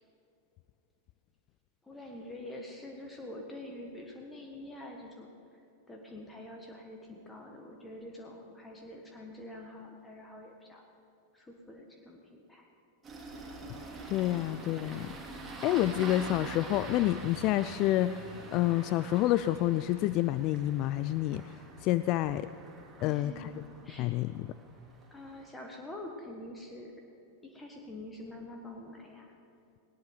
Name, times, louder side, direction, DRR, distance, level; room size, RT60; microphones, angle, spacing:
voice 1, 1.8-5.3 5.9-10.8 11.3-12.7 23.0-23.5 23.8-24.1 25.1-26.9 27.4-29.3, left 1 dB, 10° left, 1 dB, 1.6 m, -46 dB
Engine starting, 13.0-25.5, right 2 dB, 15° right, 3.2 m, -45 dB
voice 2, 14.1-15.2 15.6-21.4 21.8-22.5 23.0-23.5 24.0-24.5, left 14 dB, 40° left, 13 dB, 0.4 m, -28 dB
18.5 x 18.5 x 4.0 m, 2.7 s
figure-of-eight pair, 90°, 0 cm